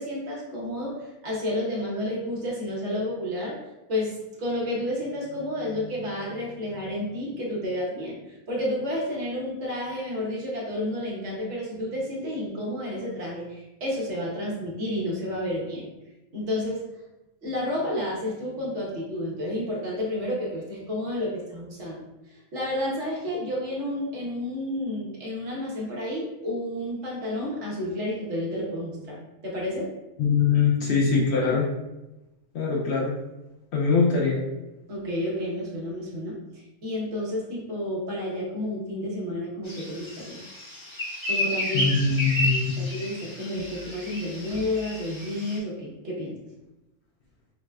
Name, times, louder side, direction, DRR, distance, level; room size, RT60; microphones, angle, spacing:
voice 1, 0.0-3.6 3.9-15.8 16.3-16.8 17.4-22.0 22.3-29.9 34.9-40.4 41.3-41.9 42.8-46.4, left 1 dB, 60° right, -4 dB, 1.1 m, -31 dB
voice 2, 30.2-31.7 32.5-33.1 33.7-34.4 41.7-42.8, left 5 dB, 65° left, -2 dB, 0.8 m, -22 dB
sound 1, 39.7-45.6, left 1 dB, 35° left, 0.5 m, -32 dB
4.6 x 2.1 x 2.3 m, 0.99 s
omnidirectional pair, 1.4 m